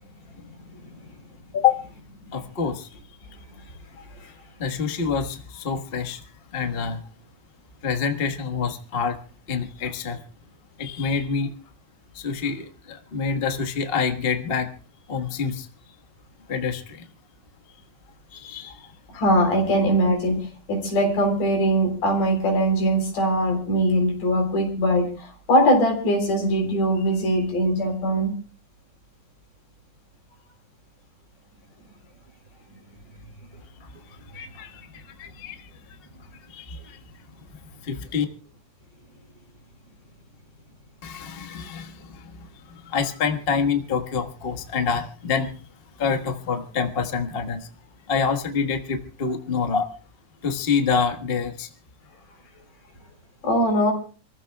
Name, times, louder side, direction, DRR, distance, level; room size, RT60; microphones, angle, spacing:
voice 1, 2.3-2.9 4.6-6.2 6.5-7.0 7.8-9.2 9.5-10.2 10.8-11.5 12.1-14.7 15.1-15.7 16.5-17.0 18.3-18.9 34.3-35.7 36.5-37.0 37.8-38.2 41.0-45.5 46.0-47.7 48.1-49.9 50.4-51.7, left 6 dB, 45° left, 5 dB, 0.7 m, -26 dB
voice 2, 19.1-28.3 53.4-53.9, equal, 90° left, 3 dB, 5.4 m, -21 dB
28.5 x 15.0 x 2.3 m, 0.38 s
omnidirectional pair, 3.6 m